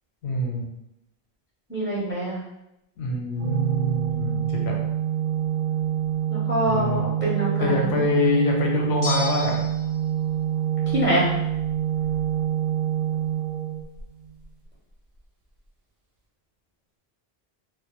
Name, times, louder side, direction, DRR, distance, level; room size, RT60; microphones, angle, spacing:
voice 1, 0.2-0.6 3.0-4.8 6.7-7.0 7.6-9.6, left 2 dB, 80° left, -1 dB, 0.8 m, -25 dB
voice 2, 1.7-2.4 6.3-8.0 10.9-11.3, right 1 dB, 20° right, -6 dB, 0.3 m, -25 dB
Organ, 3.4-14.3, right 10 dB, 55° right, 0.7 m, -26 dB
sound 1, 9.0-10.0, left 2 dB, 40° left, 0.4 m, -32 dB
2.1 x 2.0 x 2.9 m, 0.86 s
omnidirectional pair, 1.1 m